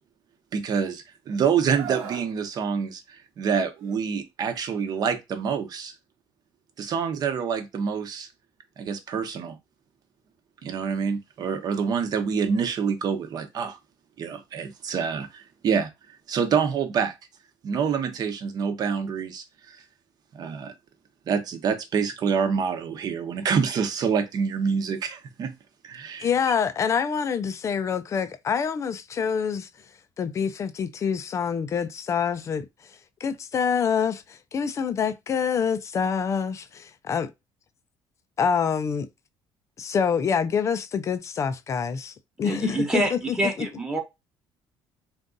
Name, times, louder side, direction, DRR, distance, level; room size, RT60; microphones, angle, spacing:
voice 1, 0.5-5.9 6.8-8.3 8.8-9.6 10.6-13.8 14.2-15.9 16.3-17.1 17.6-19.8 20.3-20.7 21.3-25.5 25.8-26.3, right 6 dB, 45° right, 0.8 m, -27 dB
Screaming, 1.7-2.3 3.8-4.0, right 8 dB, 85° right, 1.1 m, -36 dB
voice 2, 26.2-29.7 30.2-32.7 33.2-37.3 38.4-39.1 39.8-43.2 43.6-43.7, left 6 dB, 30° left, 0.5 m, -26 dB
voice 3, 42.4-44.0, right 1 dB, 5° right, 1.1 m, -26 dB
3.8 x 2.5 x 3.8 m
cardioid pair, 145°, 10 cm